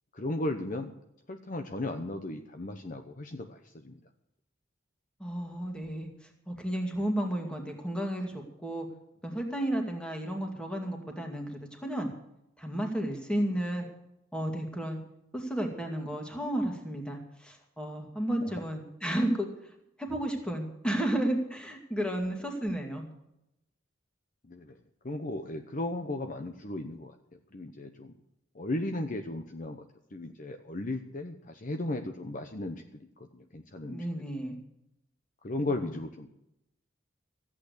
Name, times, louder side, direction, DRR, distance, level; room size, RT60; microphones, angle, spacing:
voice 1, 0.1-0.9 1.3-4.0 18.4-18.5 24.4-24.8 25.0-27.2 27.5-28.1 28.5-29.9 30.1-34.0 35.4-36.3, left 2 dB, 40° left, 6 dB, 0.9 m, -36 dB
voice 2, 5.2-6.1 6.5-8.9 9.2-12.1 12.6-13.9 14.3-15.0 15.3-19.5 20.0-23.1 33.9-34.6 35.7-35.9, right 1 dB, 5° left, 2 dB, 2.2 m, -32 dB
14.5 x 8.6 x 8.2 m, 0.83 s
head